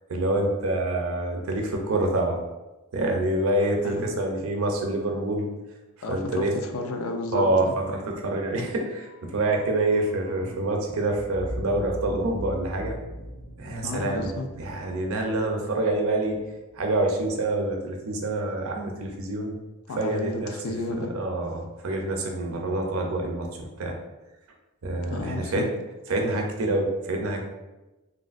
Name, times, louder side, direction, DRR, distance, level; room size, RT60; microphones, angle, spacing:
voice 1, 0.1-2.4 2.9-5.5 6.1-6.6 7.3-13.0 13.6-14.3 14.6-16.4 16.7-19.6 20.0-20.5 21.0-24.0 24.8-25.7 26.1-27.4, right 2 dB, 70° right, 2 dB, 0.5 m, -26 dB
voice 2, 6.0-7.7 13.8-14.5 19.9-21.1 25.0-25.7, left 2 dB, 70° left, 5 dB, 0.4 m, -32 dB
sound 1, 8.8-16.8 17.1-17.2, equal, 35° left, 0.7 m, -41 dB
3.2 x 2.5 x 2.4 m, 1.1 s
head